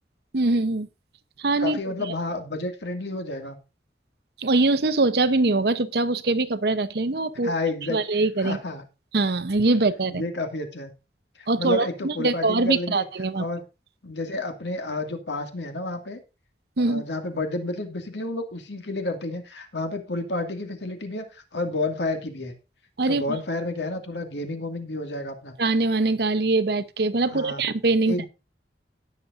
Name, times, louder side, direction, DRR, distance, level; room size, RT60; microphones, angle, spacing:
voice 1, 0.3-0.9 1.4-1.8 4.4-7.5 7.9-8.6 9.1-10.2 11.5-13.4 16.8-17.0 23.0-23.2 25.6-28.3, right 2 dB, 60° right, 0.8 m, -23 dB
voice 2, 1.6-3.6 7.4-8.0 8.4-8.8 10.1-10.9 11.4-13.0 13.3-13.6 14.0-16.2 16.8-22.5 23.1-25.6 27.3-27.6 28.1-28.3, left 2 dB, 85° left, 2.2 m, -30 dB
17.5 x 6.9 x 2.6 m
head